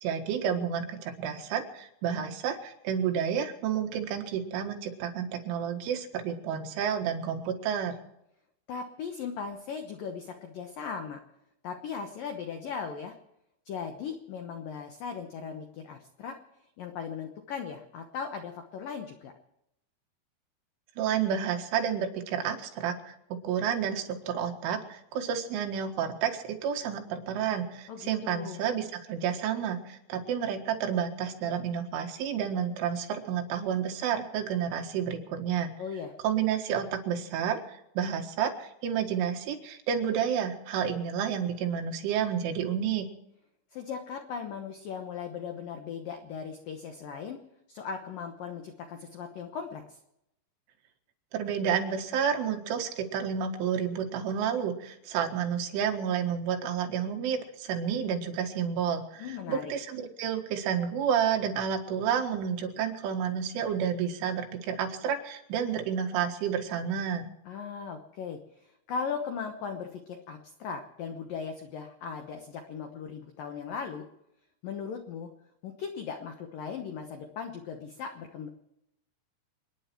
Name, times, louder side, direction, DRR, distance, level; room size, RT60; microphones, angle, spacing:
voice 1, 0.0-8.0 21.0-23.2 23.4-35.7 36.2-37.6 38.0-43.1 51.3-67.3, right 8 dB, 75° right, 4 dB, 4.1 m, -30 dB
voice 2, 8.7-11.2 11.6-13.2 13.7-16.4 16.8-19.3 27.9-28.6 35.8-36.1 43.7-47.4 47.7-50.0 59.2-59.7 67.5-74.1 74.6-75.3 75.6-78.5, left 6 dB, 75° left, 5 dB, 2.0 m, -38 dB
29.0 x 10.5 x 4.6 m, 0.82 s
omnidirectional pair, 5.8 m